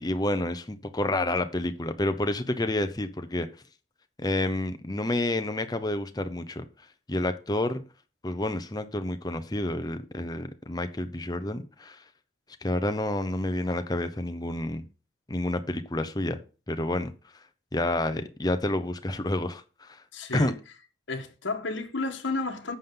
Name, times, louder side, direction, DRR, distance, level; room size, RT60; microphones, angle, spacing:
voice 1, 0.0-3.5 4.2-6.6 7.1-7.8 8.2-12.0 12.6-14.8 15.3-16.4 16.7-17.1 17.7-20.0 20.3-20.5, left 1 dB, 20° left, 0.7 m, -29 dB
voice 2, 20.1-20.6 21.1-22.7, left 3 dB, 70° left, 1.4 m, -32 dB
11.5 x 7.1 x 3.8 m
head